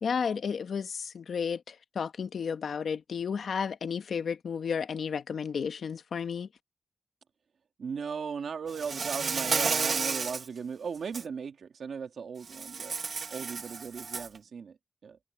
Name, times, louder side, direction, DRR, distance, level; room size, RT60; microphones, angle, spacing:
voice 1, 0.0-6.5, left 6 dB, 85° left, 1.2 m, -32 dB
voice 2, 7.8-12.9 13.3-15.2, right 6 dB, 80° right, 2.1 m, -37 dB
Insect, 8.7-10.5 10.9-11.2 12.5-14.4, right 5 dB, 60° right, 1.1 m, -32 dB
wide cardioid pair, 130°, 0 cm